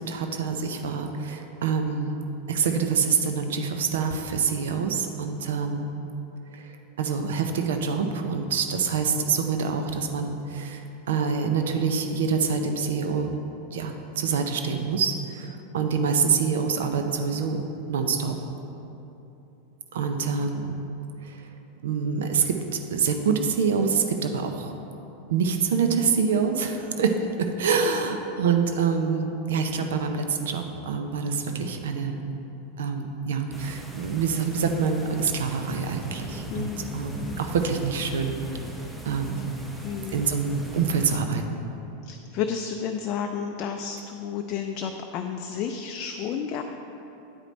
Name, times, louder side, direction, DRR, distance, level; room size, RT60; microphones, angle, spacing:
voice 1, 0.1-2.2 2.5-6.0 6.5-10.8 11.1-13.3 13.7-18.4 19.9-20.7 21.2-21.4 21.8-24.7 25.3-32.2 32.8-38.4 39.1-39.5 40.1-41.6, right 5 dB, 70° right, 5 dB, 0.6 m, -26 dB
sound 1, 33.5-41.2, right 1 dB, 10° right, 1.0 m, -40 dB
voice 2, 36.5-37.4 39.4-39.5 39.8-40.2 42.0-46.6, left 7 dB, 45° left, 4 dB, 0.4 m, -32 dB
8.9 x 4.9 x 4.3 m, 2.9 s
hypercardioid pair, 90°, 0 cm